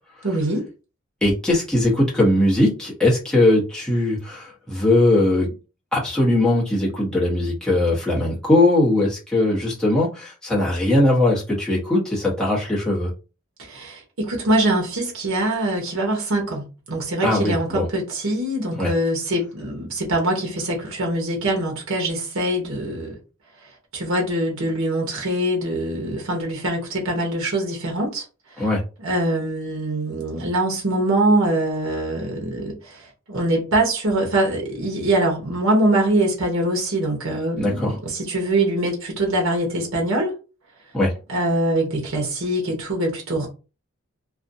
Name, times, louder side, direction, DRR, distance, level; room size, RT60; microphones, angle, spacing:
voice 1, 0.2-0.7 13.6-23.1 23.9-28.2 29.0-40.3 41.3-43.5, right 1 dB, 65° right, 0.8 m, -23 dB
voice 2, 1.2-5.5 5.9-13.1 17.2-17.9 18.8-18.9 28.6-28.8 37.6-37.9 40.9-41.1, left 1 dB, 5° left, 0.8 m, -20 dB
2.5 x 2.1 x 2.6 m
head